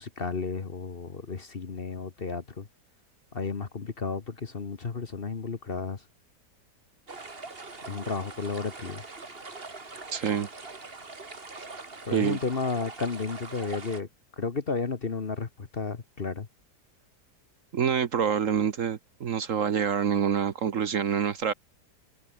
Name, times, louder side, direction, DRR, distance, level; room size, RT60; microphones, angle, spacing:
voice 1, 0.0-2.7 3.3-6.0 7.9-9.0 12.0-14.1 14.4-16.5, left 4 dB, 35° left, 1.4 m, -32 dB
sound 1, 7.1-14.0, right 3 dB, 35° right, 2.6 m, -42 dB
voice 2, 10.1-10.5 12.1-12.4 17.7-21.5, right 7 dB, 55° right, 1.2 m, -26 dB
omnidirectional pair, 1.8 m